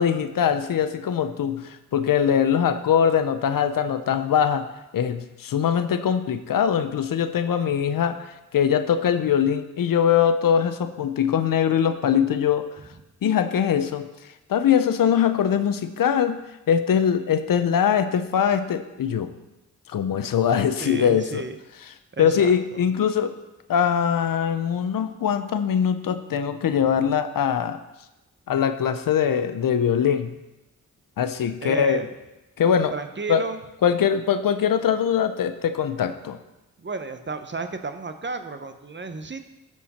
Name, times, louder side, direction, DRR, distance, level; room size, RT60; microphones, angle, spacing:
voice 1, 0.0-4.7 4.9-12.7 13.2-14.1 14.5-16.4 16.7-19.3 19.9-21.4 21.8-21.9 22.2-23.4 23.7-27.8 28.5-30.3 31.2-32.0 32.6-32.9 33.3-33.4 33.8-36.4, left 8 dB, 70° left, 10 dB, 0.7 m, -22 dB
voice 2, 20.8-21.6 22.1-22.6 31.6-32.1 32.9-33.6 36.8-39.4, right 4 dB, 30° right, 9 dB, 0.9 m, -33 dB
13.0 x 4.8 x 4.3 m, 0.99 s
cardioid pair, 50°, 35 cm